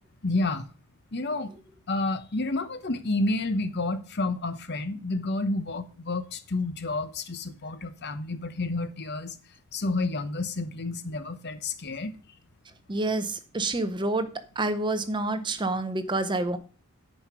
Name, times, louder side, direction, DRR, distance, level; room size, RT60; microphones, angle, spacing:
voice 1, 0.2-0.7 1.1-1.5 1.9-9.4 9.7-12.1, left 2 dB, 50° left, 0.9 m, -30 dB
voice 2, 12.9-14.3 14.6-16.6, right 2 dB, 20° right, 0.7 m, -28 dB
9.4 x 5.2 x 6.1 m
head